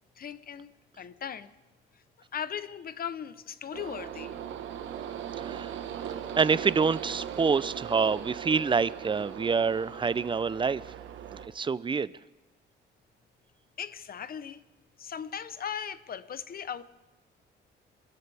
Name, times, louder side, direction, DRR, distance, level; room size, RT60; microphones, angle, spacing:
voice 1, 0.2-1.5 1.9-2.0 2.3-4.4 13.8-14.6 15.0-16.8, left 8 dB, 50° left, 0.9 m, -38 dB
sound 1, 3.7-11.5, right 9 dB, 75° right, 1.4 m, -39 dB
voice 2, 5.4-5.7 6.4-10.8 11.3-12.1, right 5 dB, 25° right, 0.5 m, -27 dB
26.0 x 14.5 x 3.5 m
cardioid pair, 90°, 20 cm